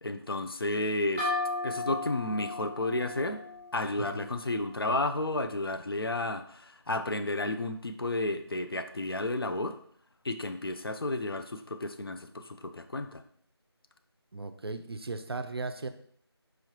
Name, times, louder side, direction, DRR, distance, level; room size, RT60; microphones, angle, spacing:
voice 1, 0.0-1.3 1.6-3.4 3.7-9.8 10.2-13.2, left 2 dB, 60° left, 8 dB, 0.4 m, -32 dB
sound 1, 1.2-4.7, left 2 dB, 5° right, 0.8 m, -36 dB
voice 2, 14.3-15.9, right 3 dB, 65° right, 9 dB, 0.4 m, -37 dB
4.8 x 3.1 x 2.9 m, 0.63 s
figure-of-eight pair, 170°, 14 cm